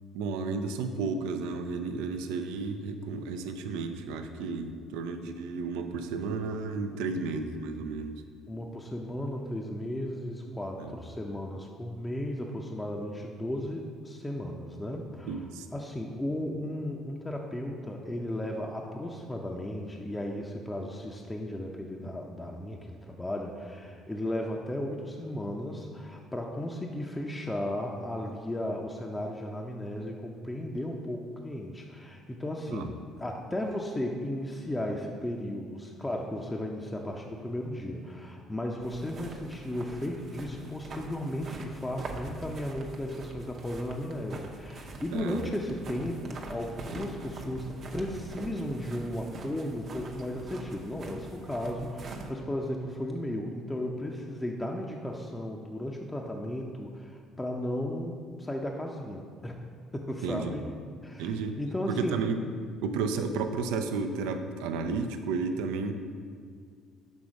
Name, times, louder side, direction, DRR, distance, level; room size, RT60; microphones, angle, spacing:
voice 1, 0.1-8.2 10.8-10.9 15.3-15.7 32.7-32.9 45.1-45.5 60.2-60.5 61.2-61.6 61.9-62.4 62.8-65.9, right 4 dB, 90° right, 7 dB, 0.4 m, -32 dB
voice 2, 6.9-7.3 8.5-15.4 15.7-59.6 59.9-62.2, left 1 dB, 15° left, 0 dB, 0.5 m, -35 dB
sound 1, 38.8-52.3, right 2 dB, 50° right, 0.7 m, -43 dB
6.3 x 3.5 x 5.1 m, 2.1 s
supercardioid pair, 90°, 0 cm